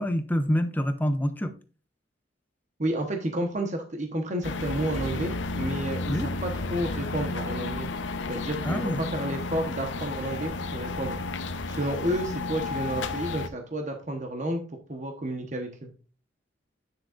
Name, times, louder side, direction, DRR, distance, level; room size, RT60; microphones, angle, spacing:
voice 1, 0.0-1.5 6.1-6.3 8.6-9.0, equal, 10° left, 0.6 m, -26 dB
voice 2, 2.8-7.9 8.3-11.2 11.7-14.6 14.9-15.9, right 1 dB, 40° right, 1.1 m, -31 dB
sound 1, 4.4-13.5, left 3 dB, 75° left, 0.7 m, -32 dB
9.9 x 6.4 x 2.5 m
head